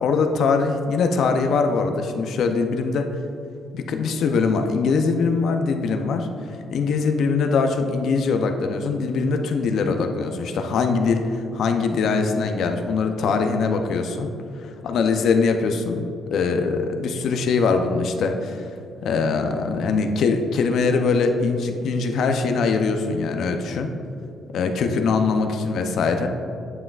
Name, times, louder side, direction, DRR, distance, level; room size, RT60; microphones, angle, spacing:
voice 1, 0.0-3.1 3.7-14.3 14.6-18.7 19.0-23.9 24.5-26.3, left 4 dB, 70° left, 6 dB, 0.5 m, -22 dB
9.6 x 5.5 x 2.4 m, 2.6 s
cardioid pair, 90°, 0 cm